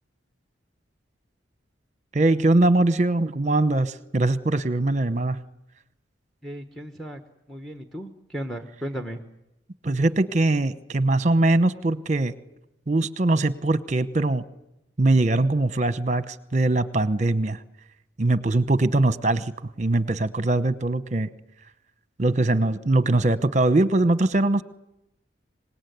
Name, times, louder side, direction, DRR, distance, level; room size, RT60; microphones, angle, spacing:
voice 1, 2.1-5.4 9.8-12.3 12.9-14.4 15.0-17.6 18.2-19.5 19.8-21.3 22.2-24.6, right 2 dB, 40° right, 14 dB, 1.0 m, -22 dB
voice 2, 6.4-7.2 7.5-9.2, equal, ahead, 6 dB, 1.2 m, -35 dB
25.0 x 20.0 x 9.4 m, 0.89 s
head